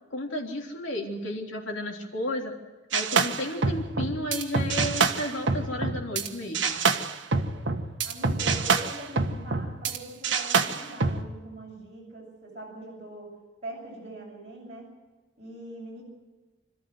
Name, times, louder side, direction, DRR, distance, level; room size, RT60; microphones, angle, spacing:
voice 1, 0.1-2.5 2.9-6.8, left 1 dB, 85° left, 1 dB, 3.5 m, -33 dB
sound 1, 2.9-6.3 6.5-10.0 10.2-11.2, right 4 dB, 80° right, 1.5 m, -26 dB
voice 2, 7.2-7.7 8.0-13.3 13.6-14.9 15.4-16.0, right 1 dB, 35° right, -5 dB, 7.3 m, -42 dB
26.5 x 13.5 x 7.9 m, 1.2 s
head